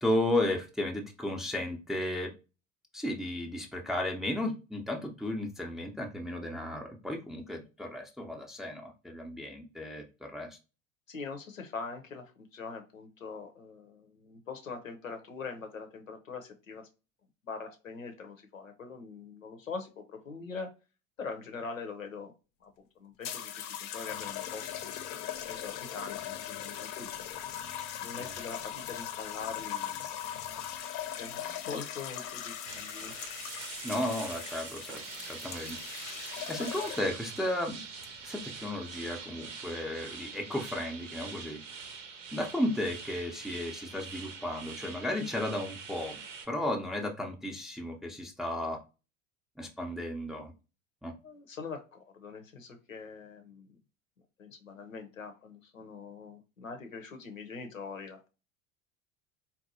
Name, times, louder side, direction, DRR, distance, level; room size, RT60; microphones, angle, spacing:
voice 1, 0.0-2.3 2.9-10.5 28.2-28.4 33.8-35.8 36.5-37.8 38.2-41.6 42.3-46.2 46.5-48.8 49.6-50.5 51.0-51.1, left 1 dB, ahead, 1 dB, 0.5 m, -34 dB
voice 2, 11.1-16.9 17.4-20.7 21.2-22.3 22.6-24.9 25.5-27.3 28.0-30.2 31.2-33.1 51.2-53.8 54.4-58.3, left 4 dB, 85° left, 6 dB, 0.7 m, -43 dB
sound 1, 23.2-37.2 38.1-38.5, left 10 dB, 45° left, 0.6 m, -40 dB
sound 2, 32.6-46.5, right 5 dB, 65° right, 0.8 m, -44 dB
4.0 x 2.2 x 2.6 m, 0.30 s
figure-of-eight pair, 70°, 39 cm